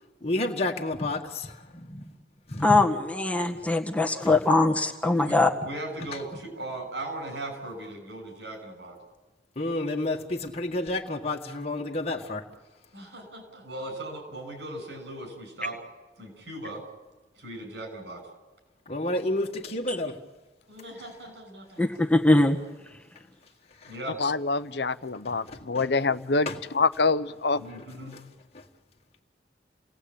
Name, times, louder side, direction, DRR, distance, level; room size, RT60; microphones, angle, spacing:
voice 1, 0.2-2.0 2.5-2.9 4.2-4.4 9.6-12.4 18.9-20.2 23.8-23.9 25.3-25.9 26.5-26.6, left 2 dB, 35° left, 1.8 m, -30 dB
voice 2, 2.6-5.5 21.8-22.6, left 2 dB, 10° left, 1.6 m, -22 dB
voice 3, 5.2-9.0 12.9-15.8 16.2-16.8 17.4-18.2 20.7-21.8 23.9-24.2 27.6-28.2, right 1 dB, 75° right, 7.3 m, -38 dB
voice 4, 24.2-27.6, left 3 dB, 70° left, 0.9 m, -26 dB
29.0 x 18.5 x 8.8 m
head